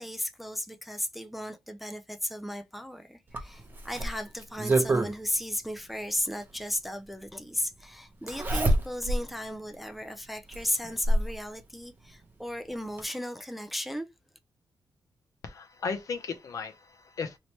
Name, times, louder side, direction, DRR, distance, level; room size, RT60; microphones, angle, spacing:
voice 1, 0.0-14.1, left 1 dB, ahead, 0.4 m, -35 dB
Zipper (clothing), 3.3-5.1 6.6-6.7 8.3-9.3 9.7-9.8 10.5-11.4 12.6-12.7 13.0-13.1, right 1 dB, 30° right, 0.7 m, -26 dB
voice 2, 15.4-17.4, left 5 dB, 55° left, 0.6 m, -35 dB
2.9 x 2.8 x 3.1 m
wide cardioid pair, 145°, 7 cm